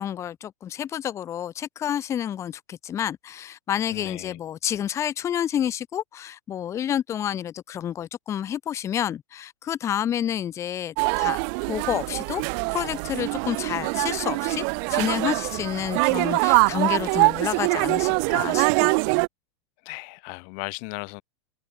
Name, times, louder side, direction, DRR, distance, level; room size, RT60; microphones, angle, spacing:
voice 1, 0.0-11.4 11.6-12.4 12.7-18.9, left 10 dB, 20° left, 0.4 m, -29 dB
voice 2, 3.9-4.4 19.9-21.2, left 40 dB or more, 45° left, 2.4 m, -36 dB
sound 1, 11.0-19.3, right 40 dB or more, 45° right, 0.8 m, -23 dB
figure-of-eight pair, 95°, 16 cm